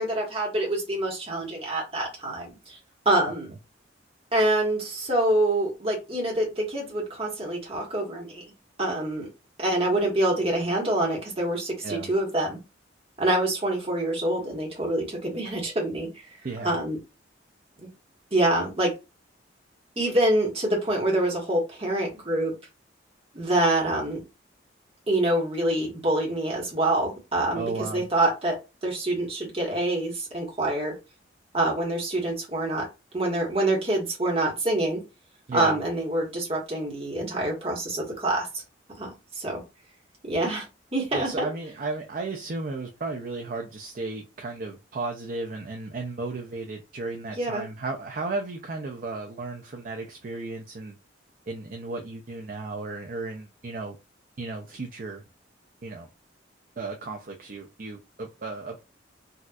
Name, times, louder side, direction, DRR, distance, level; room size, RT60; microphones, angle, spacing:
voice 1, 0.0-2.8 3.0-3.5 4.3-8.4 8.8-9.3 9.6-12.6 13.2-16.1 16.6-17.0 17.8-17.9 18.3-18.9 20.0-22.5 23.3-24.2 25.1-27.6 27.9-30.9 31.5-32.9 33.1-35.0 35.5-38.6 39.0-39.1 39.3-39.6 40.3-40.6 40.9-41.5 47.3-47.6, right 1 dB, 30° right, 1.3 m, -26 dB
voice 2, 16.4-16.8 27.5-28.0 35.5-35.8 41.1-51.0 51.5-54.0 54.4-55.2 55.8-56.1 56.8-58.8, right 3 dB, 45° right, 0.5 m, -34 dB
4.1 x 2.5 x 2.3 m
head